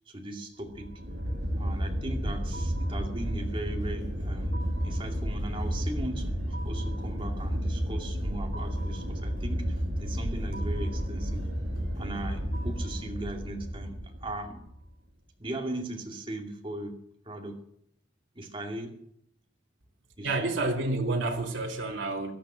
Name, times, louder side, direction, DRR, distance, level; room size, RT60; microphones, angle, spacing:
voice 1, 0.1-0.9 1.6-4.6 4.8-11.5 12.0-14.6 15.4-17.0 17.2-17.6 18.3-19.0 20.2-20.6, right 1 dB, 25° right, 2 dB, 2.5 m, -38 dB
sound 1, 0.7-14.8, equal, 60° right, 2.7 m, -32 dB
sound 2, 1.1-13.2, equal, 50° left, 3.4 m, -47 dB
voice 2, 20.2-22.3, right 2 dB, 80° right, 0 dB, 2.2 m, -29 dB
17.0 x 12.0 x 6.2 m, 0.71 s
head